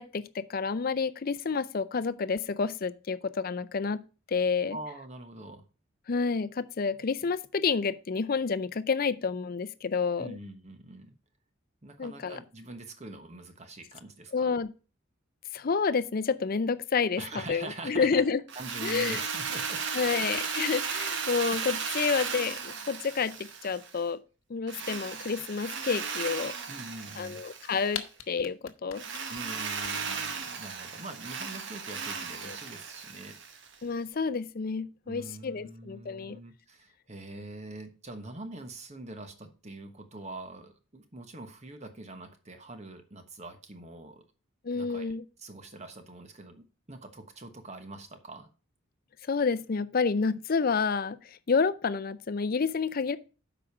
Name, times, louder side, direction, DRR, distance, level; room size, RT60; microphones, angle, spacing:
voice 1, 0.0-4.0 4.3-4.8 6.1-10.4 12.0-12.4 14.3-14.7 15.5-18.4 18.8-19.2 19.9-24.2 24.5-26.5 27.2-29.0 32.5-32.6 33.8-36.4 44.6-45.2 49.3-53.2, left 5 dB, 45° left, 0.5 m, -29 dB
voice 2, 4.7-5.6 10.2-11.1 11.8-14.5 17.2-18.2 18.5-19.8 20.1-20.2 26.7-27.4 29.3-33.4 35.0-44.2 44.7-45.1 45.4-48.5, right 2 dB, 35° right, 1.2 m, -44 dB
Drill, 18.5-24.0 24.7-28.0 28.9-33.7, right 6 dB, 60° right, 1.1 m, -35 dB
sound 1, 27.9-30.4, left 9 dB, 70° left, 1.0 m, -39 dB
7.8 x 5.0 x 6.0 m
head